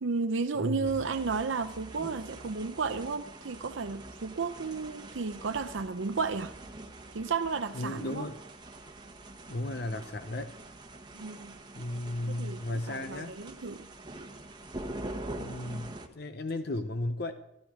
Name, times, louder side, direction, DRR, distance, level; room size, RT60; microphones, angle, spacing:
voice 1, 0.0-6.5 7.1-8.3 11.1-11.5 12.3-13.9, right 4 dB, 75° right, 0.6 m, -33 dB
voice 2, 0.6-1.0 7.7-8.4 9.5-10.6 11.7-13.4 15.3-17.3, left 1 dB, 50° left, 0.7 m, -35 dB
sound 1, 0.8-16.1, right 2 dB, 20° right, 1.1 m, -45 dB
13.5 x 13.0 x 5.0 m
head